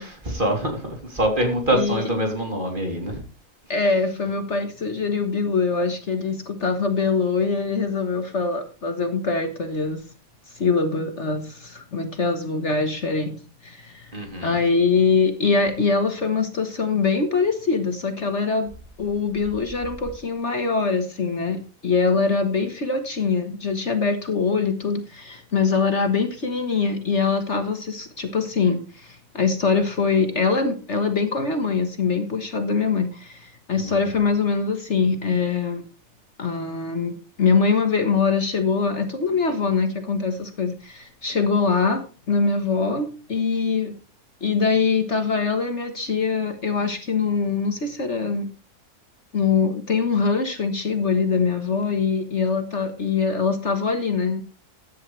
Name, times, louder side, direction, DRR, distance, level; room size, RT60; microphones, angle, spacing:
voice 1, 0.0-3.2 14.1-14.5 33.7-34.1, right 1 dB, 30° right, 2 dB, 3.3 m, -25 dB
voice 2, 1.7-2.1 3.7-10.0 10.5-13.4 13.6-18.7 19.0-35.8 36.4-43.9 44.4-48.5 49.3-54.4, left 4 dB, 50° left, 7 dB, 1.6 m, -23 dB
15.0 x 11.0 x 3.3 m, 0.34 s
omnidirectional pair, 1.7 m